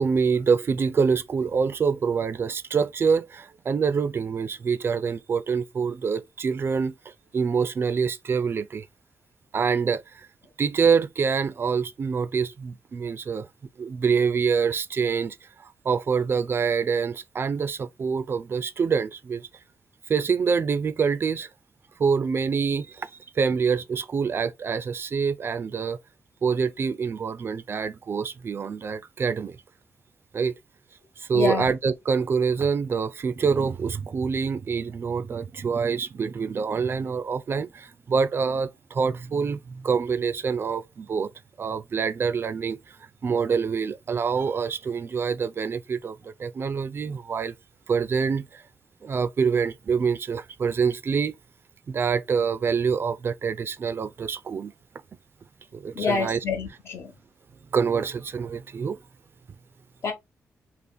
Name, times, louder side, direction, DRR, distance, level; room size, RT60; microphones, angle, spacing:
voice 1, 0.0-8.9 9.5-10.3 10.6-13.5 13.8-19.5 20.1-21.5 22.0-26.0 26.4-29.6 30.3-30.6 31.2-41.3 41.6-42.8 43.2-47.5 47.9-48.6 49.0-51.4 51.9-54.7 55.7-56.4 57.7-59.0, right 6 dB, 45° right, 0.4 m, -26 dB
voice 2, 31.3-31.7 55.9-57.1 60.0-60.1, left 5 dB, 55° left, 1.3 m, -27 dB
3.4 x 2.5 x 3.7 m
cardioid pair, 100°, 5 cm